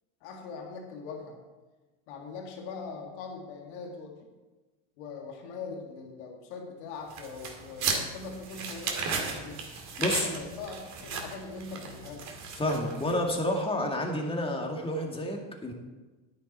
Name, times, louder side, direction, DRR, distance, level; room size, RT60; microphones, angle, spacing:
voice 1, 0.2-1.4 2.1-4.2 5.0-9.6 10.0-12.3, left 4 dB, 90° left, 1 dB, 2.1 m, -41 dB
sound 1, 7.1-13.3, right 5 dB, 55° right, 2.2 m, -35 dB
voice 2, 10.0-10.3 12.6-15.7, left 1 dB, 15° left, 1 dB, 2.2 m, -29 dB
10.5 x 9.7 x 4.3 m, 1.2 s
supercardioid pair, 100°, 34 cm